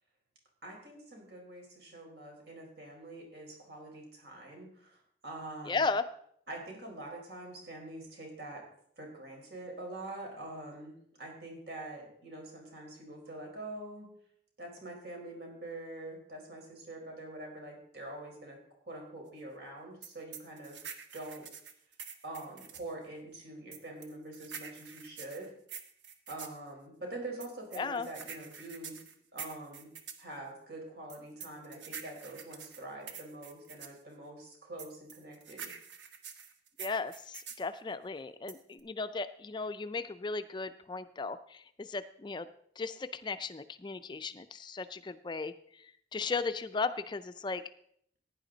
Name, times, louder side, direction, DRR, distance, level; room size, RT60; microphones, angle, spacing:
voice 1, 0.6-5.9 6.5-8.6 9.0-14.1 14.6-18.6 18.8-20.8 21.1-21.5 22.2-25.5 26.3-29.0 29.3-29.9 30.2-35.7, right 2 dB, 65° right, 0 dB, 4.5 m, -45 dB
voice 2, 5.7-6.1 27.8-28.1 36.8-42.5 42.8-45.5 46.1-47.6, left 4 dB, 25° left, 12 dB, 0.4 m, -36 dB
sound 1, 20.0-22.9 23.7-26.6 27.4-30.2 31.1-34.0 34.8-37.7 38.5-38.8, right 7 dB, 90° right, 1.2 m, -46 dB
16.0 x 9.9 x 3.9 m, 0.66 s
head